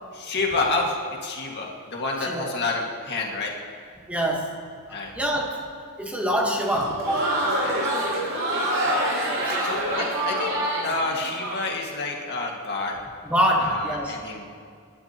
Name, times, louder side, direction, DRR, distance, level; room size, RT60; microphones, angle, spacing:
voice 1, 0.1-0.9 1.2-3.5 4.9-5.1 7.6-7.8 9.6-13.0 13.6-14.4, left 3 dB, 50° left, -1 dB, 2.0 m, -29 dB
voice 2, 2.2-2.6 4.1-4.6 5.1-5.7 6.0-7.3 8.7-9.6 13.2-14.1, equal, 5° right, -1 dB, 1.3 m, -26 dB
Crowd, 6.7-11.6, right 1 dB, 60° right, 4.7 m, -26 dB
29.0 x 11.5 x 3.0 m, 2.1 s
head